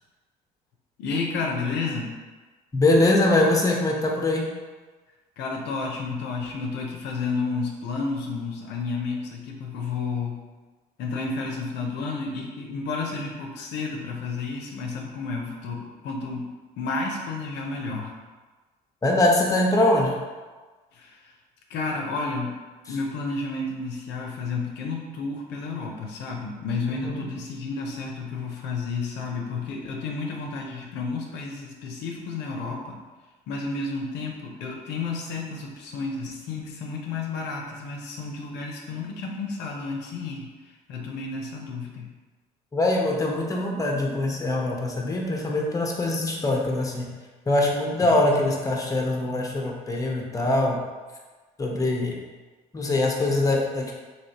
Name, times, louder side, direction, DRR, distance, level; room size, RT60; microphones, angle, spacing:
voice 1, 1.0-2.2 5.4-10.4 11.0-18.1 20.9-21.3 21.7-22.6 22.9-33.0 33.5-42.1 48.0-48.5, left 4 dB, 75° left, 0 dB, 0.6 m, -31 dB
voice 2, 2.7-4.4 19.0-20.1 27.0-27.2 42.7-47.1 47.5-50.8 51.6-52.1 52.7-53.9, left 2 dB, 20° left, -1 dB, 0.7 m, -23 dB
3.1 x 2.9 x 2.8 m, 1.3 s
supercardioid pair, 65°, 18 cm